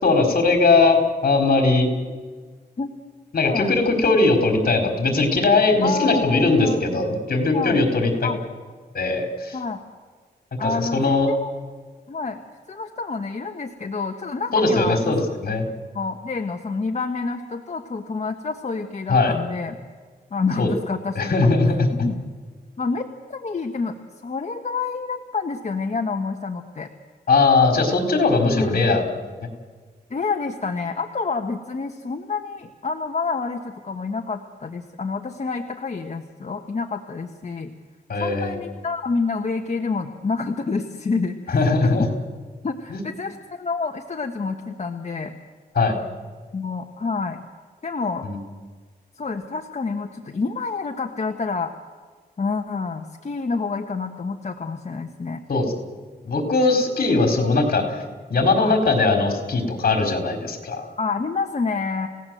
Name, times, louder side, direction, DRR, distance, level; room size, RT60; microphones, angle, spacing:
voice 1, 0.0-1.9 3.3-8.1 8.9-9.6 10.6-11.3 14.5-15.6 19.1-19.3 20.6-20.7 21.1-21.8 27.3-29.0 38.1-38.5 41.5-42.1 42.9-43.0 45.7-45.9 48.2-48.4 55.5-55.7 56.2-57.8 58.3-60.8, left 3 dB, 60° left, 4 dB, 4.5 m, -19 dB
voice 2, 5.8-7.0 7.5-7.8 8.2-8.4 9.5-9.8 10.6-11.5 12.1-12.4 12.7-15.2 15.9-19.8 20.3-21.5 22.0-22.2 22.8-26.9 28.5-28.8 30.1-37.7 38.2-41.7 42.6-45.3 46.5-47.4 47.8-48.3 49.2-51.7 52.4-55.4 58.5-58.8 61.0-62.1, left 4 dB, 40° left, 4 dB, 1.3 m, -28 dB
29.5 x 17.5 x 7.8 m, 1.5 s
wide cardioid pair, 130°, 17 cm